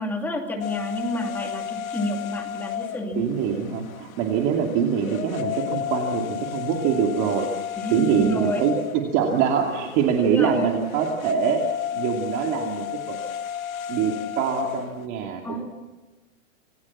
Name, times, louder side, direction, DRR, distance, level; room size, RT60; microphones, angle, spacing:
voice 1, 0.0-3.2 7.8-8.7 10.2-10.7 15.4-15.7, equal, 5° left, 1 dB, 2.6 m, -29 dB
sound 1, 0.6-15.1, left 11 dB, 85° left, 1.8 m, -33 dB
voice 2, 3.1-7.5 7.9-11.6 11.9-13.2 13.9-15.7, right 7 dB, 30° right, 1 dB, 2.5 m, -24 dB
27.5 x 20.5 x 7.3 m, 1.2 s
supercardioid pair, 165°, 40 cm